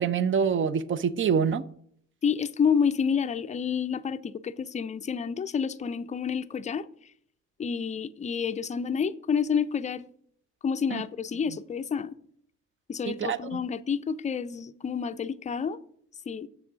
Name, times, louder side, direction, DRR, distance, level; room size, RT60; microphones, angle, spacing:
voice 1, 0.0-1.6 10.9-11.0 13.1-13.6, right 7 dB, 40° right, 0.5 m, -26 dB
voice 2, 2.2-6.9 7.6-10.0 10.6-12.1 12.9-15.8 16.3-16.5, left 6 dB, 25° left, 0.4 m, -29 dB
7.1 x 6.4 x 5.0 m
cardioid pair, 90°, 30 cm